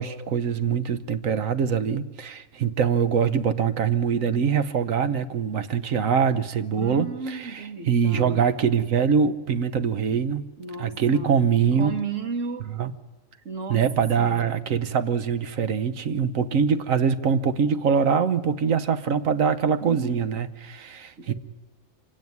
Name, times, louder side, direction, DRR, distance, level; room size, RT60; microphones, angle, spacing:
voice 1, 0.0-7.5 7.9-10.4 10.8-12.0 12.8-12.9 13.7-21.3, right 6 dB, 90° right, 12 dB, 1.4 m, -23 dB
voice 2, 6.8-8.5 10.6-11.5 11.8-12.7 13.5-13.9 14.2-14.6 19.8-20.4 21.2-21.3, right 4 dB, 70° right, 6 dB, 2.1 m, -34 dB
25.0 x 16.5 x 9.5 m, 1.2 s
omnidirectional pair, 1.4 m